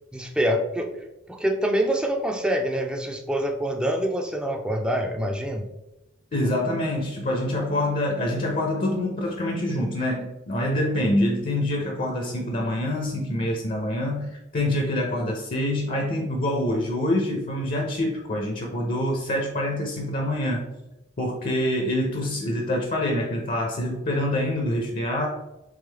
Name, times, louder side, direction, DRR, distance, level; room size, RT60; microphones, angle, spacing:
voice 1, 0.1-0.9 1.3-5.7, equal, 5° right, 3 dB, 0.4 m, -25 dB
voice 2, 6.3-20.7 21.2-25.3, left 1 dB, 45° left, 1 dB, 0.6 m, -26 dB
3.6 x 3.3 x 3.3 m, 0.95 s
head